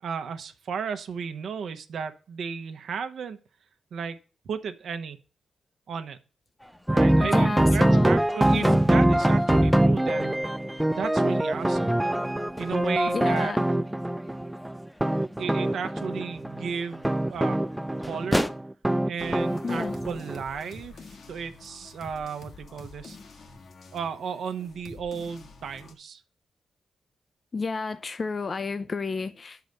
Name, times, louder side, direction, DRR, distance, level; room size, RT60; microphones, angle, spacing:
voice 1, 0.0-3.4 3.9-4.2 4.4-5.2 5.9-6.2 6.9-10.4 10.9-12.0 12.6-13.5 15.4-17.6 18.0-18.5 19.0-23.2 23.9-26.2, right 6 dB, 75° right, 0.9 m, -34 dB
sound 1, 6.6-18.5, equal, 5° left, 0.8 m, -38 dB
sound 2, 6.9-20.4, right 1 dB, 10° right, 0.5 m, -24 dB
voice 2, 7.2-8.1 8.5-8.8 13.1-13.6 19.6-19.9 27.5-29.6, left 4 dB, 45° left, 0.5 m, -31 dB
sound 3, 19.2-25.9, left 3 dB, 65° left, 1.6 m, -47 dB
9.3 x 4.8 x 6.6 m
supercardioid pair, 55°, 0 cm